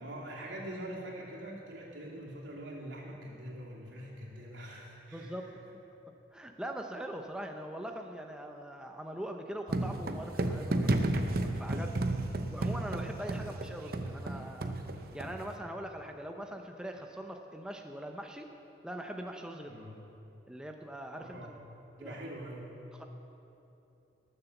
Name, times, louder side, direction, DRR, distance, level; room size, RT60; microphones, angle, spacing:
voice 1, 0.0-5.7 12.1-12.3 13.3-13.5 19.7-19.9 21.2-21.5 22.0-22.8, right 1 dB, 85° right, -4 dB, 2.9 m, -44 dB
voice 2, 5.1-5.5 6.3-10.9 11.4-12.0 12.5-14.8 15.1-18.5 18.8-19.7 20.5-21.6 22.0-22.3 23.0-23.1, right 1 dB, 5° right, 3 dB, 0.6 m, -42 dB
sound 1, 9.7-15.5, right 2 dB, 50° right, 0.7 m, -32 dB
19.0 x 6.8 x 7.1 m, 2.9 s
head